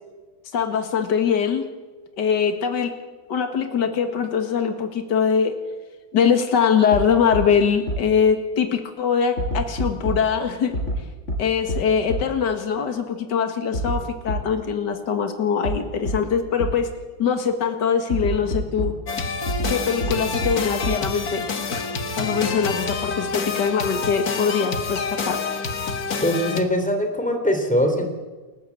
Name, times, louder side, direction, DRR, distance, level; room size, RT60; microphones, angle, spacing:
voice 1, 0.5-1.7 2.2-2.9 3.3-5.5 6.1-10.7 11.4-16.9 17.2-18.9 19.7-21.5 22.2-25.4, left 6 dB, 70° left, 7 dB, 2.4 m, -22 dB
sound 1, 6.9-7.0 7.3-7.4 7.9-8.0 9.4-10.2 10.7-11.0 11.3-11.4 11.7-11.8 12.1-12.2 13.7-14.0 14.3-14.4 15.6-15.7 16.1-16.2 16.6-16.7 18.1-18.9 19.5-19.7 20.0-20.1 20.4-20.5 20.8-20.9, right 1 dB, 40° left, 5.5 m, -25 dB
sound 2, 19.1-26.6, left 4 dB, 55° left, 2.1 m, -28 dB
voice 2, 26.2-28.1, equal, 5° left, 5 dB, 3.3 m, -22 dB
29.0 x 15.0 x 8.4 m, 1.3 s
omnidirectional pair, 1.9 m